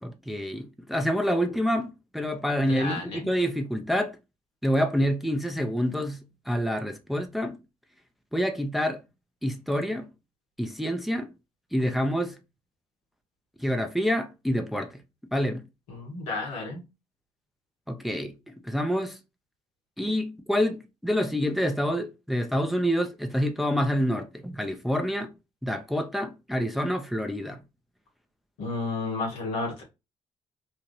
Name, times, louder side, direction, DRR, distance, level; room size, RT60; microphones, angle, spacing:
voice 1, 0.0-4.2 4.6-6.2 6.5-7.6 8.3-9.0 9.4-10.1 10.6-11.3 11.7-12.4 13.6-15.0 15.3-15.6 17.9-19.2 20.0-25.3 25.6-27.6, equal, ahead, 0.7 m, -27 dB
voice 2, 2.6-3.3 15.9-16.8 28.6-29.8, left 3 dB, 85° left, 1.2 m, -32 dB
2.9 x 2.4 x 3.0 m
hypercardioid pair, 45°, 16 cm